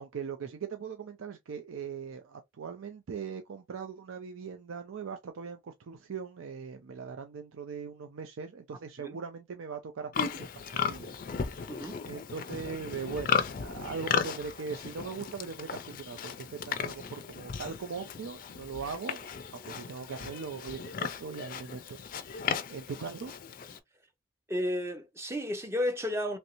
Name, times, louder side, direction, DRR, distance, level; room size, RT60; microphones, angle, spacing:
voice 1, 0.0-11.1 11.4-11.7 12.1-22.0 22.2-22.4 22.7-23.3, right 5 dB, 85° right, 0.4 m, -40 dB
Livestock farm animals working animals, 10.1-23.8, left 6 dB, 45° left, 0.3 m, -36 dB
voice 2, 11.7-12.0 24.5-26.4, left 1 dB, 15° right, 0.5 m, -32 dB
3.1 x 2.6 x 2.9 m
head